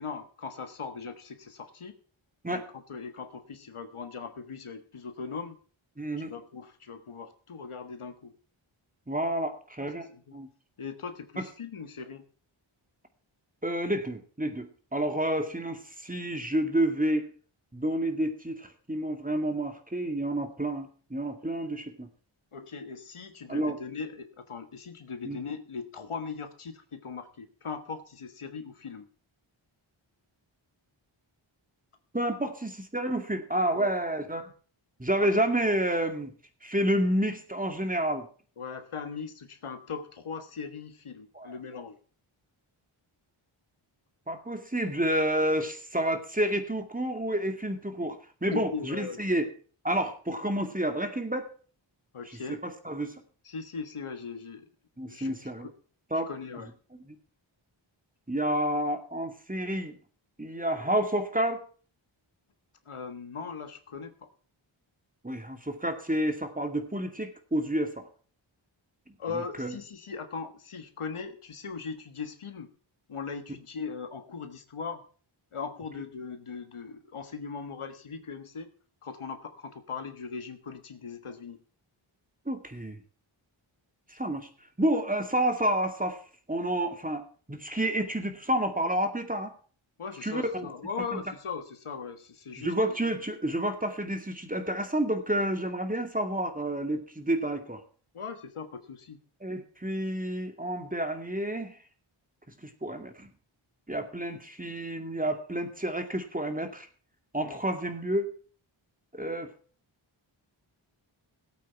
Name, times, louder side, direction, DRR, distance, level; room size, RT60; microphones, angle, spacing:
voice 1, 0.0-1.9 2.5-5.6 6.2-8.3 9.8-10.4 10.8-12.2 22.5-29.1 33.7-33.9 35.2-35.3 38.6-41.9 48.5-49.2 52.1-52.6 53.4-54.7 55.1-55.7 56.3-56.7 62.8-64.3 69.2-72.7 73.1-75.0 75.5-78.7 79.0-81.6 90.0-92.9 98.1-99.2 107.4-107.6, left 5 dB, 85° left, 8 dB, 1.5 m, -39 dB
voice 2, 6.0-6.3 9.1-10.1 10.3-10.5 13.6-17.3 17.7-22.1 23.5-23.8 25.3-25.4 32.1-34.5 35.0-36.3 36.6-38.3 41.3-41.5 44.3-49.5 49.8-51.5 52.5-53.2 55.0-55.7 56.1-56.3 57.1-57.2 58.3-59.9 60.4-61.6 65.2-68.1 69.3-69.8 82.5-83.0 84.1-84.5 84.8-86.2 86.5-89.5 90.2-90.7 91.1-91.2 92.6-97.8 99.4-101.8 102.6-103.3 103.9-106.9 107.3-108.3 109.1-109.5, right 1 dB, 15° right, 6 dB, 2.2 m, -29 dB
16.5 x 8.6 x 4.6 m, 0.41 s
wide cardioid pair, 55°, 49 cm